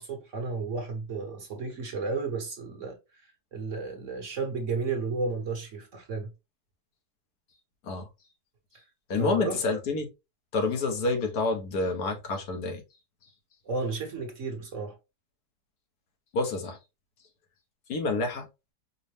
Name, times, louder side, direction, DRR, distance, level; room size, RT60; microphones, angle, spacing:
voice 1, 0.0-6.3 9.2-9.6 13.6-15.0, right 4 dB, 55° right, 1.2 m, -33 dB
voice 2, 9.1-10.1 10.5-12.8 16.3-16.8 17.9-18.5, left 3 dB, 70° left, 1.4 m, -28 dB
5.3 x 2.1 x 3.2 m
omnidirectional pair, 1.8 m